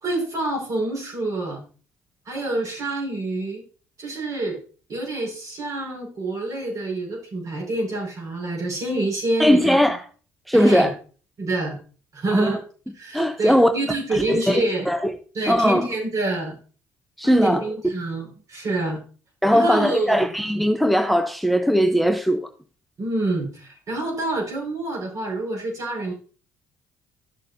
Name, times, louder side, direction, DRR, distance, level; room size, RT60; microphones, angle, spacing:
voice 1, 0.0-1.6 2.3-3.6 4.0-4.6 4.9-9.8 10.5-10.9 11.4-11.8 12.1-12.6 13.0-14.9 15.3-16.6 17.2-19.0 19.5-20.3 23.0-26.1, right 2 dB, 50° right, 5.2 m, -27 dB
voice 2, 9.4-10.0 10.5-10.9 12.3-12.6 13.1-13.7 14.1-15.1 15.5-15.9 17.2-17.6 19.4-22.5, equal, ahead, 0.8 m, -19 dB
13.0 x 6.5 x 2.7 m
hypercardioid pair, 55°, 7 cm